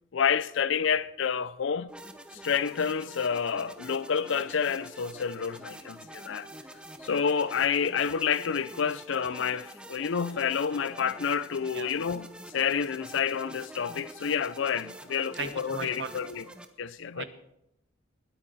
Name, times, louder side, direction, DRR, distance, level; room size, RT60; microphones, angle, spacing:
voice 1, 0.1-1.9 2.4-6.5 7.0-16.4 16.8-17.2, left 7 dB, 70° left, 0.5 m, -29 dB
sound 1, 1.9-16.7, right 1 dB, 5° right, 0.8 m, -47 dB
voice 2, 15.3-16.2 17.1-17.3, right 5 dB, 65° right, 1.2 m, -37 dB
20.5 x 9.1 x 4.2 m
head